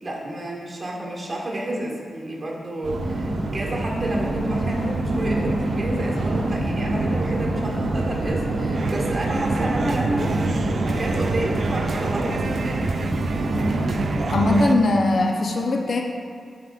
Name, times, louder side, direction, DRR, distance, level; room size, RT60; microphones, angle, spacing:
voice 1, 0.0-12.9, right 1 dB, 35° right, -2 dB, 1.5 m, -30 dB
sound 1, 2.8-14.6, right 2 dB, 80° right, 0.8 m, -25 dB
sound 2, 8.7-14.8, right 3 dB, 60° right, 0.3 m, -29 dB
voice 2, 14.3-16.0, left 2 dB, 65° left, 2 dB, 0.5 m, -20 dB
11.0 x 4.6 x 2.3 m, 2.2 s
cardioid pair, 55°, 0 cm